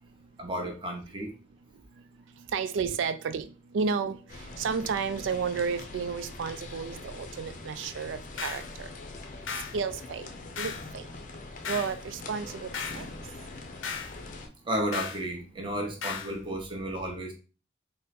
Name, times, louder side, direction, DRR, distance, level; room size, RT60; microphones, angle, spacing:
voice 1, 0.4-1.3 14.6-17.3, right 1 dB, 25° right, 0.8 m, -32 dB
voice 2, 2.5-3.5 3.7-4.2 4.6-8.9 9.7-10.3 10.6-11.0 11.7-13.1, right 5 dB, 80° right, 0.3 m, -32 dB
sound 1, 4.3-14.5, left 2 dB, 40° left, 0.5 m, -43 dB
sound 2, 8.4-8.7 9.5-9.8 10.6-10.9 11.6-12.0 12.7-13.1 13.8-14.2 14.9-15.2 16.0-16.3, left 6 dB, 90° left, 0.6 m, -35 dB
3.7 x 2.0 x 4.2 m
head